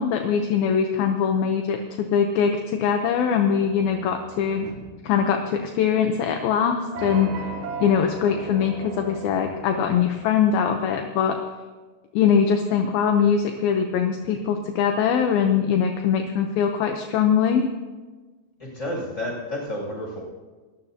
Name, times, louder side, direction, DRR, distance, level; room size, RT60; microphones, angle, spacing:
voice 1, 0.0-4.7 5.0-7.5 7.8-11.4 12.1-17.7, left 7 dB, 75° left, 4 dB, 2.6 m, -22 dB
sound 1, 3.5-5.9 6.9-10.6, right 4 dB, 75° right, 3.9 m, -38 dB
voice 2, 18.6-20.2, left 1 dB, 15° left, -3 dB, 7.1 m, -30 dB
29.5 x 14.0 x 2.9 m, 1.3 s
omnidirectional pair, 4.5 m